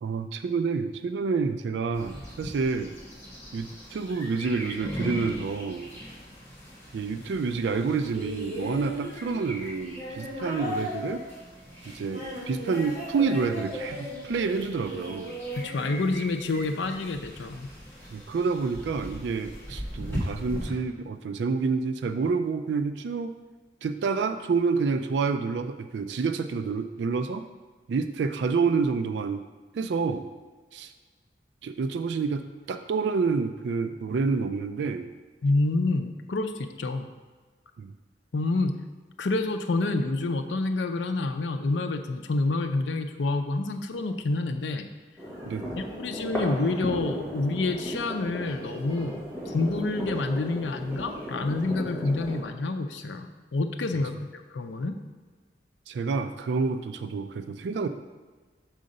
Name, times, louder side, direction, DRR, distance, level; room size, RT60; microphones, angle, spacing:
voice 1, 0.0-3.0 3.5-5.9 6.9-11.2 11.9-15.4 18.1-23.3 23.8-27.5 27.9-29.4 29.7-30.3 30.7-30.9 31.6-35.1 37.8-37.9 45.5-45.8 55.9-57.9, right 4 dB, 75° right, 9 dB, 0.3 m, -28 dB
sound 1, 1.9-20.7, equal, 15° left, 1.9 m, -40 dB
sound 2, 8.1-16.5 17.5-17.6, equal, 40° right, 1.7 m, -37 dB
voice 2, 15.6-17.7 35.4-37.1 38.3-38.7 39.2-44.9 45.8-49.2 49.5-53.3 53.5-54.9, left 2 dB, 80° left, 6 dB, 0.5 m, -28 dB
sound 3, 45.2-52.4, equal, 15° right, 1.3 m, -36 dB
6.4 x 3.8 x 5.3 m, 1.4 s
head